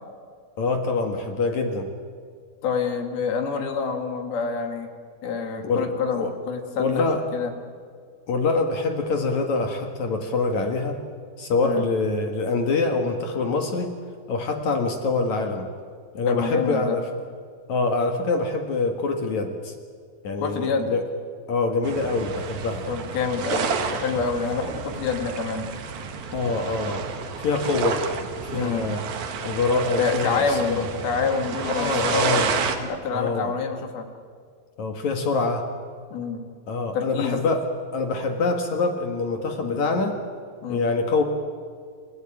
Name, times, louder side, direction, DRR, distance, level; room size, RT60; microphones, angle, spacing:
voice 1, 0.6-1.9 5.6-5.9 6.1-6.3 6.8-7.2 8.3-11.0 11.4-13.9 14.3-15.7 16.1-17.1 17.7-19.7 20.2-21.0 21.5-22.9 26.3-27.0 27.4-28.1 28.4-29.0 29.4-30.9 31.6-32.5 33.1-33.5 34.8-35.6 36.7-37.6 37.9-40.2 40.7-41.2, left 3 dB, 60° left, 5 dB, 2.8 m, -25 dB
voice 2, 2.6-4.9 5.2-7.0 7.3-7.5 11.6-11.8 16.3-17.0 20.4-20.9 22.9-25.7 28.5-28.8 30.0-32.4 32.8-34.1 36.1-36.4 36.9-37.4 39.6-39.8 40.6-40.8, left 5 dB, 90° left, 5 dB, 4.3 m, -27 dB
sound 1, 21.8-32.8, right 6 dB, 75° right, 3.6 m, -30 dB
29.5 x 16.5 x 9.1 m, 2.1 s
omnidirectional pair, 4.2 m